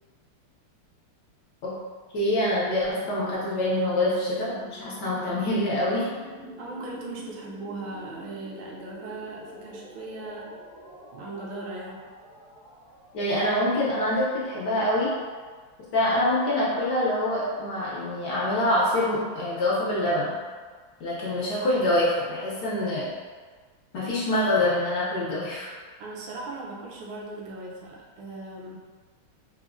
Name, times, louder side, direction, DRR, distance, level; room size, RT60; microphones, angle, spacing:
voice 1, 2.1-6.1 13.1-15.1 15.9-20.3 21.0-23.1 23.9-25.7, left 1 dB, 70° left, -7 dB, 1.0 m, -25 dB
sound 1, 2.8-14.6, right 1 dB, 5° left, 0.6 m, -46 dB
voice 2, 6.6-10.5 11.1-12.1 26.0-28.8, right 2 dB, 80° right, -3 dB, 1.4 m, -38 dB
4.1 x 2.0 x 2.4 m, 1.5 s
omnidirectional pair, 2.3 m